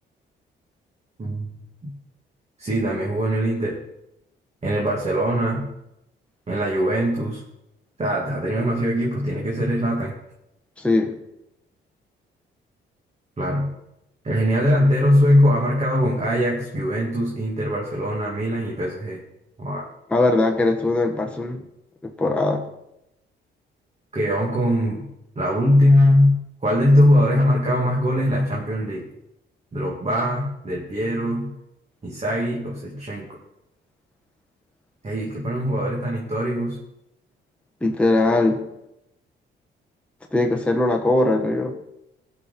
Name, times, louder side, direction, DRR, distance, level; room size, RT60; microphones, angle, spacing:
voice 1, 1.2-1.6 1.8-1.9 2.6-3.8 4.6-5.7 6.5-7.4 8.0-10.1 13.4-13.7 14.2-19.2 19.6-19.9 24.1-25.1 25.4-29.1 29.7-31.5 32.0-33.3 35.0-36.8, equal, 35° right, -3 dB, 2.3 m, -21 dB
voice 2, 10.8-11.1 20.1-21.6 22.0-22.6 37.8-38.6 40.3-41.7, left 2 dB, 5° left, 1 dB, 1.1 m, -20 dB
15.5 x 6.1 x 4.2 m, 0.86 s
cardioid pair, 90°, 20 cm